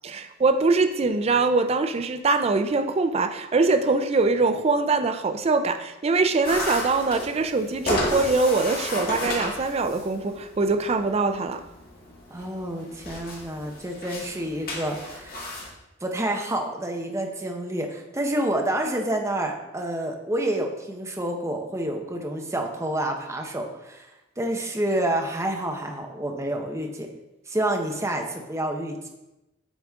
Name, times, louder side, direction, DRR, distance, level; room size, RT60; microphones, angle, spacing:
voice 1, 0.0-11.6, right 3 dB, 30° right, 8 dB, 0.4 m, -23 dB
sound 1, 6.4-15.7, left 1 dB, 50° left, 1.8 m, -33 dB
voice 2, 12.3-15.4 16.0-24.1 24.4-27.1 27.5-29.1, right 1 dB, 15° right, 2 dB, 0.9 m, -28 dB
8.0 x 4.9 x 3.6 m, 0.96 s
head